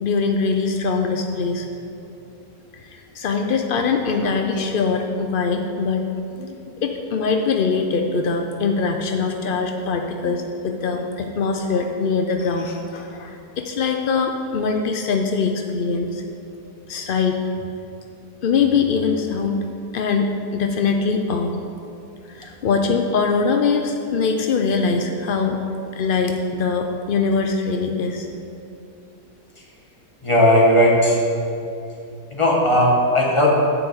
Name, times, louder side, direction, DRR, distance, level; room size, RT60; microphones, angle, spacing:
voice 1, 0.0-1.7 2.7-6.1 6.3-16.2 16.9-17.4 18.4-19.6 19.9-21.6 22.3-25.6 25.9-28.3, left 5 dB, 75° left, 4 dB, 0.4 m, -22 dB
voice 2, 30.2-31.2 32.3-33.6, left 1 dB, 20° left, -3 dB, 1.5 m, -16 dB
10.0 x 4.6 x 8.0 m, 2.7 s
omnidirectional pair, 1.7 m